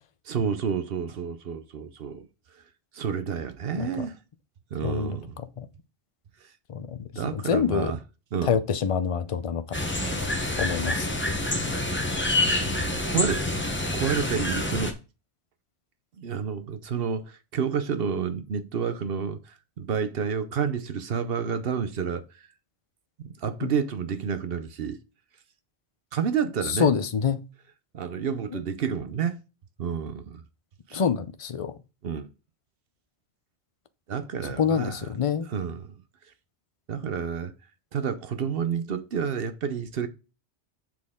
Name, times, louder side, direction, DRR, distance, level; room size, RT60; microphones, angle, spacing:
voice 1, 0.3-2.3 2.9-4.2 4.7-5.4 7.2-8.0 8.3-8.6 12.3-15.0 16.2-22.2 23.2-25.0 26.1-26.9 27.9-29.4 29.8-30.4 30.9-31.0 32.0-32.3 34.1-35.1 35.5-35.9 36.9-37.5 37.9-40.1, right 7 dB, 60° right, 0.9 m, -30 dB
voice 2, 4.8-5.2 5.6-5.7 6.7-7.9 8.4-9.9 10.6-11.1 23.6-23.7 26.7-27.4 28.5-28.6 30.9-31.7 34.4-35.5, left 7 dB, 40° left, 0.5 m, -26 dB
sound 1, 9.7-14.9, left 1 dB, 10° left, 0.8 m, -27 dB
7.4 x 4.2 x 3.6 m
omnidirectional pair, 1.2 m